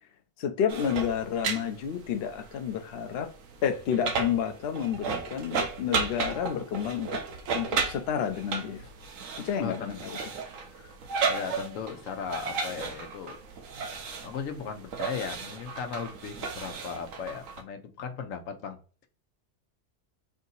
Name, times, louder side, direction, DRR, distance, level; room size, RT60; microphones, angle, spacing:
voice 1, 0.4-3.3 3.6-7.1 7.5-8.9 9.4-10.2, left 8 dB, 60° left, 0.8 m, -30 dB
sound 1, 0.7-17.6, right 5 dB, 80° right, 1.1 m, -34 dB
voice 2, 9.6-10.2 10.7-10.9 11.3-13.4 14.2-18.8, left 6 dB, 90° left, 1.1 m, -37 dB
3.5 x 2.7 x 3.9 m
omnidirectional pair, 1.3 m